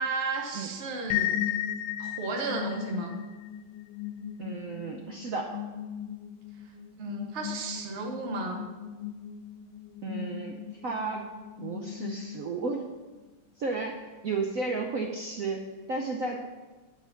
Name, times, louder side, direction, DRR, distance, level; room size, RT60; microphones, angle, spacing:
voice 1, 0.0-1.4 2.0-3.1 7.0-8.7, right 3 dB, 40° right, 2 dB, 1.1 m, -33 dB
sound 1, 1.1-12.7, left 11 dB, 85° left, 1.5 m, -36 dB
voice 2, 4.4-5.6 10.0-10.6 10.8-11.3 11.6-12.9 13.6-16.4, right 3 dB, 75° right, 2 dB, 0.7 m, -33 dB
9.1 x 4.8 x 6.9 m, 1.3 s
omnidirectional pair, 2.3 m